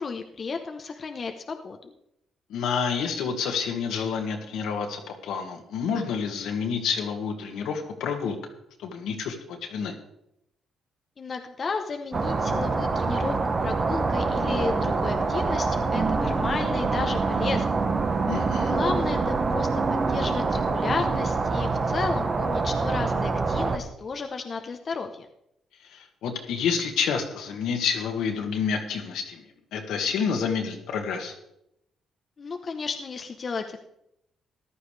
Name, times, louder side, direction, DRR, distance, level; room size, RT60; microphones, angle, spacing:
voice 1, 0.0-1.9 11.2-17.8 18.7-25.3 32.4-33.8, left 4 dB, 40° left, 4 dB, 0.9 m, -33 dB
voice 2, 2.5-8.4 8.8-10.0 18.3-18.8 25.9-29.5 29.7-31.3, left 6 dB, 85° left, 3 dB, 1.8 m, -29 dB
sound 1, 12.1-23.8, right 4 dB, 40° right, 1.2 m, -25 dB
14.5 x 11.5 x 3.3 m, 0.80 s
cardioid pair, 90°, 0 cm